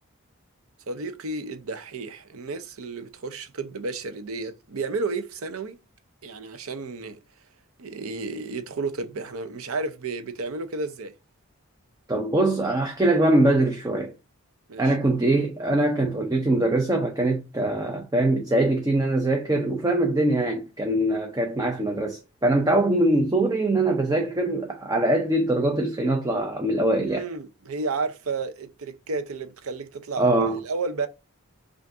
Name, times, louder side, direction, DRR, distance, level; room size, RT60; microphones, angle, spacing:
voice 1, 0.9-5.8 6.2-7.2 7.8-11.1 14.7-15.0 27.0-31.1, right 3 dB, 75° right, 0.6 m, -32 dB
voice 2, 12.1-14.1 14.8-27.3 30.2-30.6, right 1 dB, 15° right, 0.5 m, -23 dB
5.8 x 2.5 x 2.5 m
head